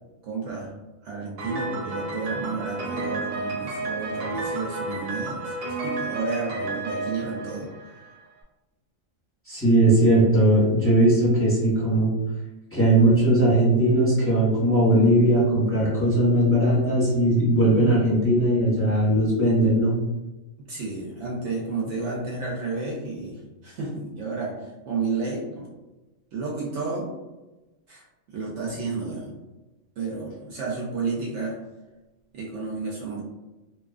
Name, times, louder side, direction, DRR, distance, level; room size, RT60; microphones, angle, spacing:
voice 1, 0.2-0.8 1.0-8.0 20.6-25.7 26.3-27.1 27.9-29.4 30.0-31.6 32.3-33.2, right 4 dB, 65° right, -3 dB, 0.8 m, -31 dB
Piano, 1.4-8.2, right 2 dB, 90° right, 1.1 m, -31 dB
voice 2, 9.5-12.1 12.7-19.9, right 1 dB, 10° left, -8 dB, 0.8 m, -19 dB
2.8 x 2.3 x 2.4 m, 1.1 s
omnidirectional pair, 1.4 m